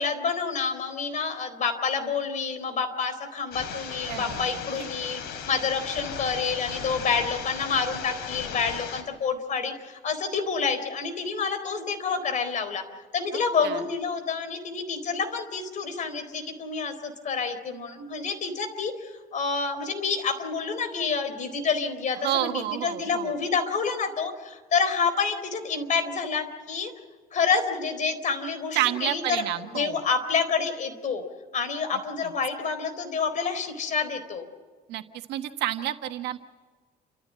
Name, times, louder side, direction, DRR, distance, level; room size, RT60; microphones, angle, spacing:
voice 1, 0.0-12.8 13.1-26.9 27.3-29.4 29.7-31.2 31.5-34.5, left 5 dB, 50° left, 8 dB, 4.1 m, -28 dB
sound 1, 3.5-9.0, left 7 dB, 80° left, 3.7 m, -37 dB
voice 2, 4.1-4.9 13.3-13.8 22.1-23.3 28.7-30.0 31.9-32.3 34.9-36.4, right 13 dB, 85° right, 7 dB, 1.6 m, -30 dB
30.0 x 14.5 x 7.7 m, 1.4 s
cardioid pair, 110°, 17 cm